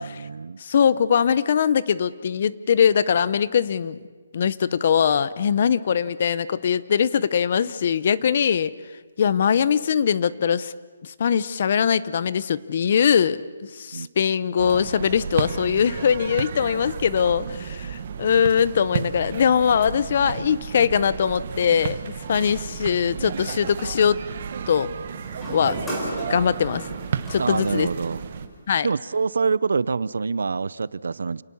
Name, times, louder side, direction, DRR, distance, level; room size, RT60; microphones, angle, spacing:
voice 1, 0.0-0.6 13.9-14.1 27.4-28.2 28.8-31.4, right 4 dB, 75° right, 20 dB, 0.6 m, -26 dB
voice 2, 0.6-4.0 4.3-8.7 9.2-10.7 11.0-22.0 22.3-24.2 24.7-24.9 25.5-25.8 26.3-26.9 27.3-27.9 28.7-28.9, left 7 dB, 35° left, 18 dB, 0.7 m, -21 dB
sound 1, 14.6-28.5, right 7 dB, 35° right, 1.2 m, -33 dB
sound 2, 25.1-28.7, right 1 dB, 5° left, 4.1 m, -36 dB
28.5 x 19.0 x 7.1 m, 1.4 s
hypercardioid pair, 175°, 0 cm